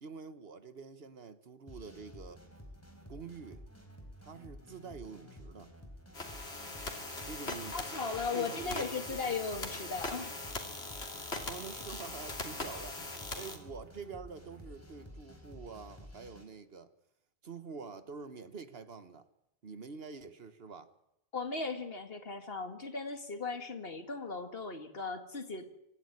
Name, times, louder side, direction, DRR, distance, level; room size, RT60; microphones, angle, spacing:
voice 1, 0.0-2.4 3.1-3.6 4.2-5.7 7.2-7.8 8.3-9.4 11.4-16.9 17.4-19.3 19.6-20.9, right 5 dB, 70° right, 11 dB, 1.5 m, -47 dB
sound 1, 1.7-16.4, equal, 15° left, 4.2 m, -52 dB
sound 2, 6.1-13.6, left 2 dB, 85° left, 3.1 m, -41 dB
voice 2, 7.7-10.3 21.3-25.7, left 4 dB, 65° left, 7 dB, 2.2 m, -37 dB
25.0 x 15.0 x 9.8 m, 0.85 s
omnidirectional pair, 1.0 m